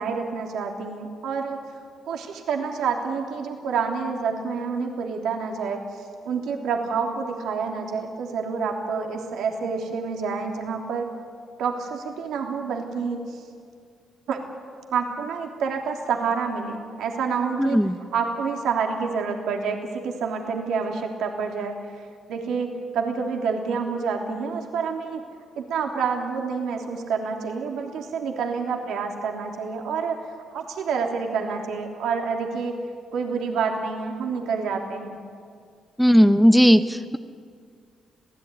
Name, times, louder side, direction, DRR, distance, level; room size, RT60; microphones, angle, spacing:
voice 1, 0.0-1.6 2.1-5.8 6.2-11.1 11.6-13.4 14.3-14.4 14.9-17.8 18.1-22.0 22.3-25.2 25.6-30.2 30.5-32.7 33.1-35.2, right 5 dB, 80° right, 2 dB, 3.1 m, -28 dB
voice 2, 17.6-18.0 36.0-37.2, equal, ahead, 9 dB, 0.9 m, -16 dB
25.5 x 17.0 x 9.8 m, 2.1 s
cardioid pair, 90°, 0 cm